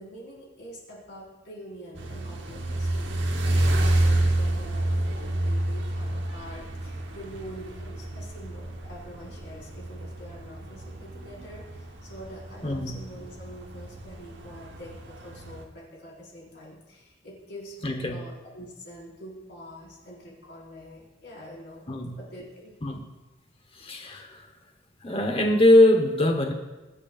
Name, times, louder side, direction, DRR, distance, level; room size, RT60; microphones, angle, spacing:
voice 1, 0.0-21.9 22.2-22.8, equal, 60° left, -4 dB, 4.5 m, -45 dB
sound 1, 1.9-15.6, right 1 dB, 65° right, 1.1 m, -29 dB
voice 2, 12.6-12.9 17.8-18.2 21.9-22.2 22.8-23.0 23.7-24.5 25.0-26.5, left 1 dB, 30° left, 4 dB, 1.0 m, -22 dB
23.5 x 8.2 x 2.4 m, 1.2 s
head